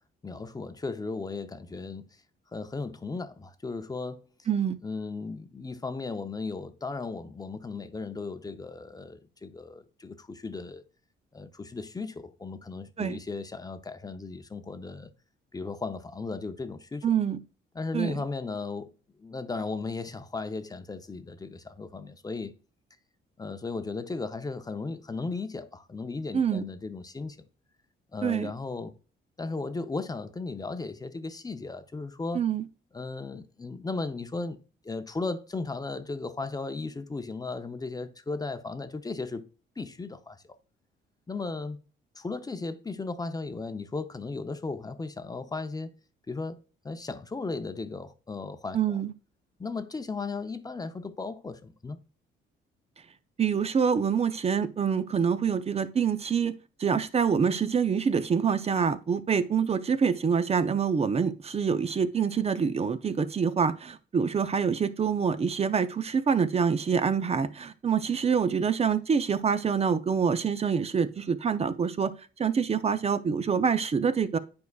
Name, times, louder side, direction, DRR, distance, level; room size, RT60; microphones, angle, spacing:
voice 1, 0.2-2.1 2.5-4.3 4.8-10.8 11.3-15.1 15.5-17.1 17.7-18.9 19.2-22.5 23.4-27.4 28.1-28.9 29.4-32.4 32.9-34.6 34.8-39.5 39.8-40.4 41.3-41.8 42.2-45.9 46.3-46.6 46.8-49.0 49.6-52.0, left 3 dB, 20° left, 0.6 m, -36 dB
voice 2, 17.0-17.4 17.9-18.2 26.3-26.6 28.2-28.5 32.3-32.7 48.7-49.1 53.4-56.5 56.8-72.1 72.4-74.4, right 6 dB, 30° right, 0.5 m, -26 dB
9.3 x 4.7 x 2.3 m
cardioid pair, 90°, 20 cm